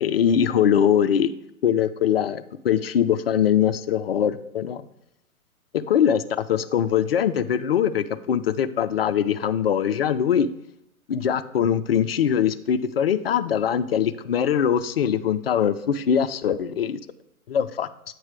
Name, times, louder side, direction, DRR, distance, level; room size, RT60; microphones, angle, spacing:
voice 1, 0.0-1.3 1.6-4.8 5.7-10.5 11.1-17.0 17.5-17.9, left 8 dB, 45° left, 11 dB, 0.4 m, -22 dB
8.2 x 3.2 x 6.0 m, 0.82 s
hypercardioid pair, 135°, 44 cm